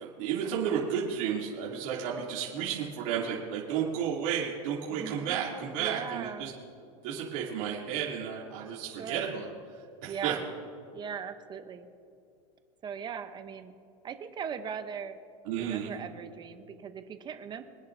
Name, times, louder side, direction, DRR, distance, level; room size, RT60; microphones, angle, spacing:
voice 1, 0.0-6.5 7.0-9.5 10.0-10.3 15.5-15.9, right 8 dB, 60° right, -5 dB, 2.8 m, -32 dB
voice 2, 4.9-5.4 5.8-6.5 8.8-9.3 10.1-10.4 10.9-11.9 12.8-13.7 14.0-15.2 15.6-17.6, right 7 dB, 25° right, 9 dB, 0.8 m, -39 dB
24.5 x 10.5 x 2.7 m, 2.4 s
supercardioid pair, 140°, 18 cm